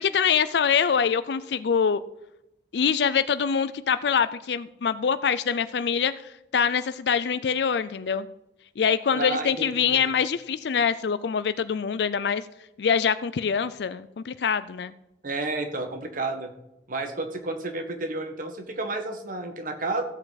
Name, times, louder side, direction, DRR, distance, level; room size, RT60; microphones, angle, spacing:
voice 1, 0.0-2.0 2.7-6.1 6.5-8.3 8.8-12.5 12.8-14.9, left 7 dB, 65° left, 14 dB, 0.4 m, -24 dB
voice 2, 9.1-10.0 15.2-16.5 16.9-20.0, right 2 dB, 50° right, 6 dB, 1.5 m, -31 dB
15.0 x 8.0 x 4.1 m, 0.88 s
head